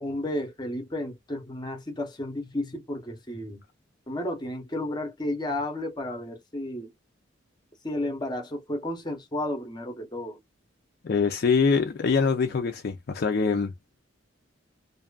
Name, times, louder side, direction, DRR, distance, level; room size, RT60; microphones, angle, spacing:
voice 1, 0.0-3.6 4.1-6.9 7.8-10.4, left 1 dB, 20° left, 0.8 m, -32 dB
voice 2, 11.0-13.7, left 5 dB, 55° left, 0.4 m, -24 dB
2.6 x 2.4 x 2.3 m
head